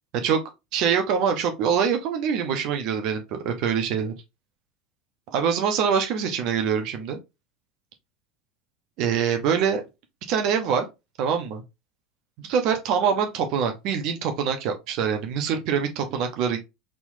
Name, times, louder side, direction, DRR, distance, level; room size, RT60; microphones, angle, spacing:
voice 1, 0.7-4.1 5.3-7.2 9.0-9.8 10.3-10.8 11.2-11.6 12.4-16.6, right 7 dB, 55° right, 1.0 m, -24 dB
4.4 x 3.8 x 2.7 m
figure-of-eight pair, 75°, 0 cm